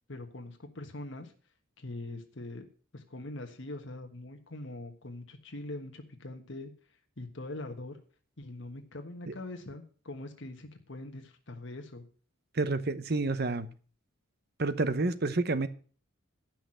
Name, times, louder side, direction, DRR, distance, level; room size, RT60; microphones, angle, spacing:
voice 1, 0.1-1.3 1.8-2.7 2.9-6.7 7.2-8.0 8.4-12.1, left 2 dB, 60° left, 5 dB, 1.4 m, -42 dB
voice 2, 12.5-13.7 14.6-15.7, right 3 dB, 50° right, 13 dB, 0.9 m, -29 dB
11.5 x 6.0 x 7.6 m, 0.41 s
head